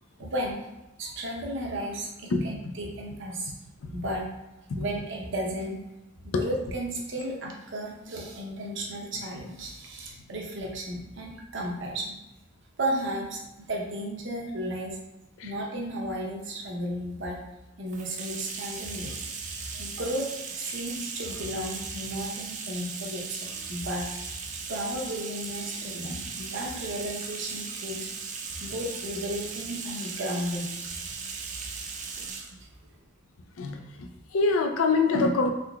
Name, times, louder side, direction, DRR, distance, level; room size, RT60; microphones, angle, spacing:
voice 1, 0.2-0.7 1.0-3.5 3.9-4.3 4.8-5.8 6.2-12.2 12.8-15.0 15.4-17.4 17.8-19.2 19.6-24.1 24.7-28.1 28.6-30.7 31.0-31.1 32.6-32.7, right 1 dB, 60° right, 0 dB, 0.7 m, -34 dB
Bathtub (filling or washing), 17.9-32.5, right 5 dB, 35° right, 0.3 m, -37 dB
voice 2, 33.6-35.5, left 3 dB, 75° left, 4 dB, 0.4 m, -25 dB
3.8 x 3.2 x 2.2 m, 0.97 s
head